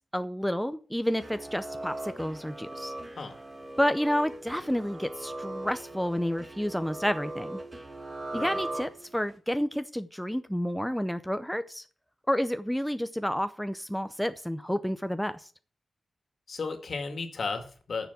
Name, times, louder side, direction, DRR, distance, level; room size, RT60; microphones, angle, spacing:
voice 1, 0.1-2.9 3.8-7.6 8.3-11.8 12.3-15.5, equal, ahead, 10 dB, 0.6 m, -30 dB
sound 1, 1.1-9.3, right 2 dB, 25° right, 1.9 m, -39 dB
voice 2, 16.5-18.1, left 4 dB, 60° left, 6 dB, 2.2 m, -34 dB
9.5 x 7.1 x 8.3 m, 0.40 s
wide cardioid pair, 150°, 0 cm